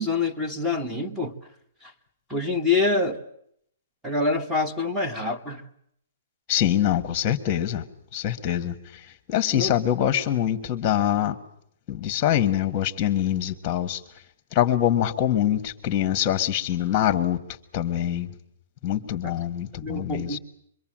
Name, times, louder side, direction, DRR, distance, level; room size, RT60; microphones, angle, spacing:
voice 1, 0.0-1.4 1.8-1.9 2.3-3.2 4.0-5.6 9.5-9.7 19.2-19.3 19.7-20.4, left 3 dB, 5° right, 5 dB, 1.3 m, -26 dB
voice 2, 6.5-7.8 8.1-11.4 11.9-14.0 14.5-17.4 17.7-18.3 18.8-20.4, left 11 dB, 25° left, 10 dB, 1.6 m, -24 dB
25.5 x 23.5 x 7.6 m, 0.71 s
hypercardioid pair, 165°, 0 cm